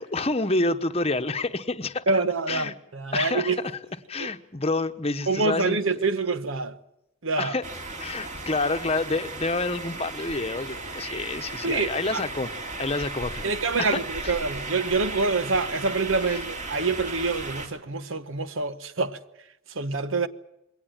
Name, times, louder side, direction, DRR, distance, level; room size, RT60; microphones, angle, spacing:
voice 1, 0.0-2.0 2.5-2.7 3.1-3.7 4.1-6.0 7.4-7.6 8.0-12.5 12.8-13.5 13.8-14.4 16.2-16.4, left 2 dB, 30° left, 1.0 m, -28 dB
voice 2, 2.1-3.6 4.2-4.3 5.3-6.8 7.2-7.5 11.6-12.2 13.4-19.2 19.7-20.3, right 3 dB, 70° right, 1.0 m, -26 dB
sound 1, 7.6-17.7, right 3 dB, 35° right, 2.8 m, -36 dB
22.0 x 18.0 x 8.9 m
head